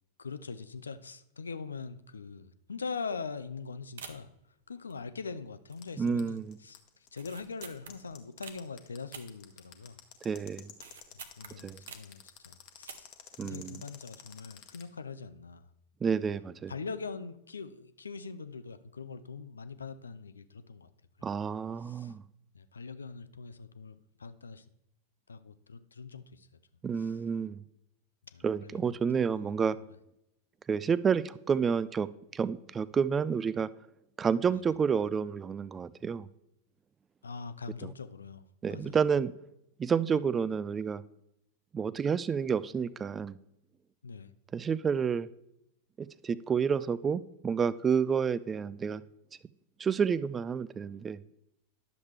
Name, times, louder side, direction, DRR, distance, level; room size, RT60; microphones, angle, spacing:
voice 1, 0.2-4.3 4.7-10.0 11.4-13.1 13.4-15.7 16.7-20.9 21.8-22.1 22.5-24.7 25.3-26.5 27.0-27.2 28.2-29.8 34.5-34.6 37.2-38.4 38.7-39.0 44.0-44.3, left 5 dB, 75° left, 13 dB, 0.5 m, -42 dB
sound 1, 3.0-3.2 3.5-3.6 4.0-4.4 4.9-5.4 5.7-6.1 6.4-6.5 7.1-8.6 9.1-10.0 10.3-12.2 12.7-13.3 13.5-13.6, right 7 dB, 60° right, 0.7 m, -48 dB
sound 2, 5.7-14.8, left 10 dB, 40° left, 1.0 m, -50 dB
voice 2, 6.0-6.6 10.2-10.7 11.6-11.8 13.4-13.8 16.0-16.7 21.2-22.2 26.8-27.6 28.4-29.8 30.7-33.7 34.2-36.3 38.6-39.3 39.8-41.0 41.7-43.4 44.5-45.3 46.0-49.0 49.8-51.2, right 6 dB, 20° right, 18 dB, 0.3 m, -29 dB
10.5 x 7.1 x 3.3 m, 0.83 s
figure-of-eight pair, 90°, 0 cm